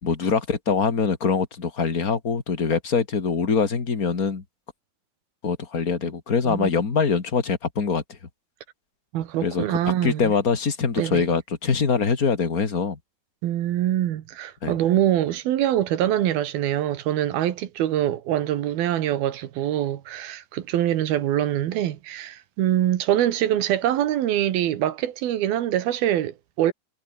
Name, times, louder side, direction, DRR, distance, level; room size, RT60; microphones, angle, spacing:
voice 1, 0.0-4.4 5.4-8.2 9.4-13.0 14.6-14.8, left 5 dB, 30° left, 2.0 m, -24 dB
voice 2, 9.1-10.3 11.0-11.3 13.4-26.7, right 12 dB, 75° right, 3.3 m, -24 dB
omnidirectional pair, 4.5 m